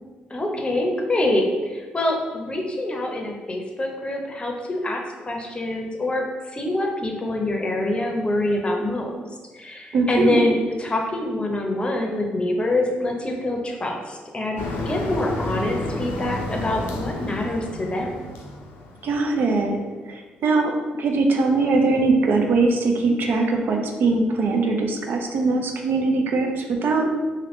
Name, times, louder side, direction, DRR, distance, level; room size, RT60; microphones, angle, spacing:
voice 1, 0.3-6.2 6.5-9.2 9.5-18.1, left 1 dB, 30° left, 1 dB, 0.6 m, -25 dB
voice 2, 9.9-10.5 19.0-19.8 20.1-20.7 21.0-27.1, right 3 dB, 65° right, 3 dB, 0.4 m, -21 dB
Motor vehicle (road), 14.6-19.5, left 2 dB, 85° left, 0.4 m, -31 dB
2.8 x 2.5 x 3.1 m, 1.3 s
supercardioid pair, 60°, 4 cm